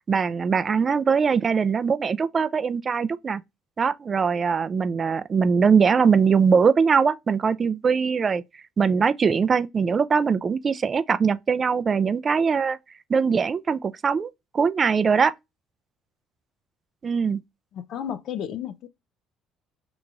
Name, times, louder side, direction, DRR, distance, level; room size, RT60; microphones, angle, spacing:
voice 1, 0.1-3.4 3.8-8.4 8.8-12.8 13.1-15.3 17.0-17.4, right 6 dB, 40° right, 0.3 m, -21 dB
voice 2, 17.7-18.9, left 9 dB, 65° left, 0.3 m, -32 dB
3.7 x 2.9 x 2.3 m
hypercardioid pair, 65°, 0 cm